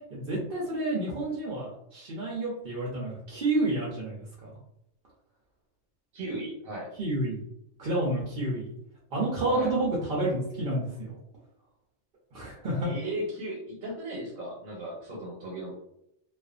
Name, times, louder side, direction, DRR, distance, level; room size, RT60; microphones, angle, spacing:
voice 1, 0.1-4.5 7.0-7.4 7.8-8.7 9.1-11.2 12.3-12.9, right 2 dB, 50° right, -5 dB, 0.7 m, -30 dB
voice 2, 6.1-6.9 9.5-9.7 12.8-15.7, right 1 dB, 90° right, -3 dB, 1.2 m, -36 dB
2.5 x 2.4 x 2.4 m, 0.79 s
omnidirectional pair, 1.4 m